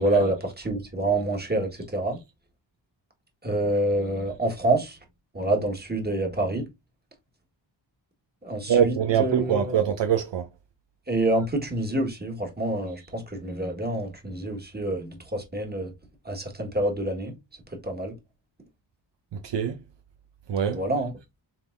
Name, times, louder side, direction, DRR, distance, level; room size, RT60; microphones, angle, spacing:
voice 1, 0.0-2.2 3.4-5.0 5.3-6.7 8.4-9.8 11.1-15.9 16.2-17.3 17.8-18.1 20.7-21.1, right 1 dB, 20° right, 1.6 m, -27 dB
voice 2, 8.7-10.5 19.3-19.8 20.5-20.8, right 8 dB, 70° right, 0.7 m, -23 dB
5.6 x 3.5 x 2.6 m
wide cardioid pair, 90°, 45 cm